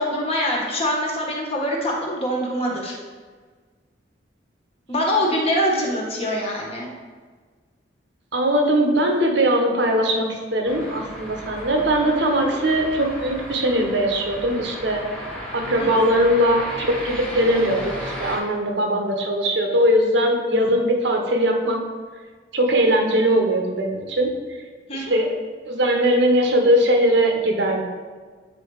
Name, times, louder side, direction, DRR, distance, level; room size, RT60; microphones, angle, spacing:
voice 1, 0.0-3.0 4.9-6.9 15.8-16.0 24.9-25.1, equal, 30° left, -2 dB, 1.4 m, -24 dB
voice 2, 8.3-15.1 15.5-21.8 22.5-24.6 24.9-25.3 25.6-27.8, equal, 65° right, 2 dB, 1.0 m, -20 dB
sound 1, 10.6-18.4, equal, 5° left, 1.5 m, -34 dB
9.2 x 4.1 x 4.8 m, 1.5 s
head